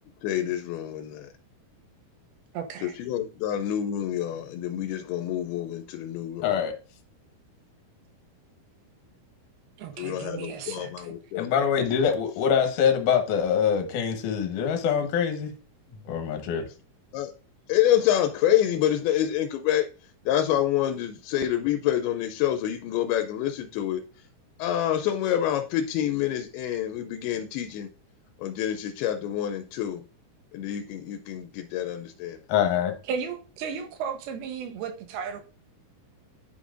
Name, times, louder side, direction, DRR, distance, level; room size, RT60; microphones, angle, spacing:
voice 1, 0.2-1.3 2.8-6.5 10.0-11.5 17.1-17.3 17.7-19.9 20.3-24.0 24.6-27.9 28.4-30.0 30.5-32.4, left 11 dB, 90° left, 2.5 m, -27 dB
voice 2, 2.5-3.0 9.8-11.1 33.1-35.4, right 6 dB, 90° right, 2.9 m, -34 dB
voice 3, 6.4-6.8 11.3-15.5 16.0-16.7 32.5-32.9, left 7 dB, 65° left, 2.2 m, -24 dB
10.0 x 5.4 x 2.5 m
omnidirectional pair, 4.4 m